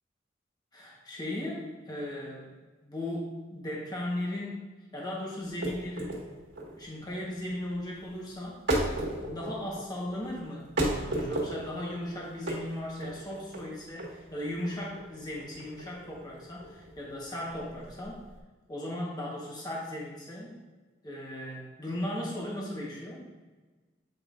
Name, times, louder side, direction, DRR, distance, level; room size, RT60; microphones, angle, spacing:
voice 1, 0.7-2.5 2.8-4.7 4.9-6.1 6.8-8.6 9.3-18.3 18.7-20.6 21.0-23.2, left 1 dB, 20° left, -4 dB, 1.2 m, -37 dB
sound 1, 5.4-18.4, right 1 dB, 70° right, 1.7 m, -35 dB
8.6 x 5.3 x 2.5 m, 1.3 s
head